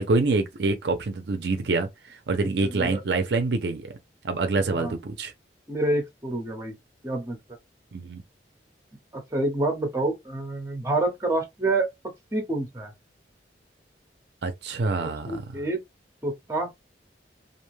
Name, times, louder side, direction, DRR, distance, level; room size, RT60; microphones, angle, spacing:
voice 1, 0.0-3.9 4.2-5.3 7.9-8.2 14.4-15.4, right 3 dB, 70° right, 0.5 m, -26 dB
voice 2, 2.4-3.0 4.7-4.9 5.7-6.7 7.0-7.4 9.1-11.9 12.3-12.9 15.0-15.8 16.2-16.7, right 2 dB, 15° right, 0.9 m, -28 dB
2.5 x 2.1 x 3.1 m
head